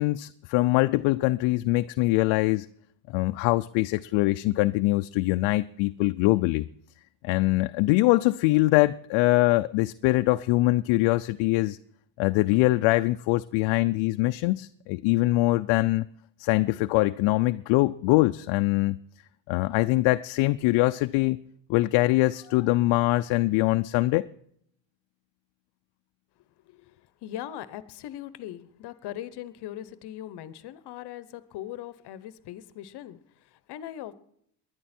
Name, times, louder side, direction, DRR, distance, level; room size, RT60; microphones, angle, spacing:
voice 1, 0.0-2.7 3.1-6.7 7.2-11.8 12.2-16.1 16.4-19.0 19.5-21.4 21.7-24.3, left 19 dB, 70° left, 0.6 m, -23 dB
voice 2, 26.6-34.1, left 12 dB, 55° left, 1.0 m, -40 dB
20.0 x 10.5 x 4.4 m
cardioid pair, 135°, 47 cm